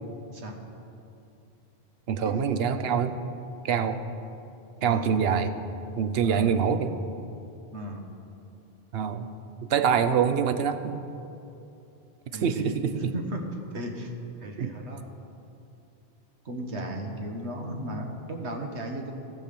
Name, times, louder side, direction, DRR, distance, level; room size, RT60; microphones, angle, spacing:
voice 1, 0.3-0.6 2.2-2.5 4.8-5.1 6.2-6.5 7.7-8.0 12.3-12.8 13.1-13.4 13.7-14.1 14.4-15.0 16.4-19.1, right 1 dB, 85° right, 3 dB, 1.5 m, -35 dB
voice 2, 2.1-3.2 3.6-4.0 4.8-5.5 6.0-6.9 8.9-9.3 9.6-11.0 12.4-13.1 14.6-14.7, right 7 dB, 70° right, 10 dB, 0.8 m, -25 dB
14.5 x 6.1 x 6.9 m, 2.8 s
omnidirectional pair, 1.1 m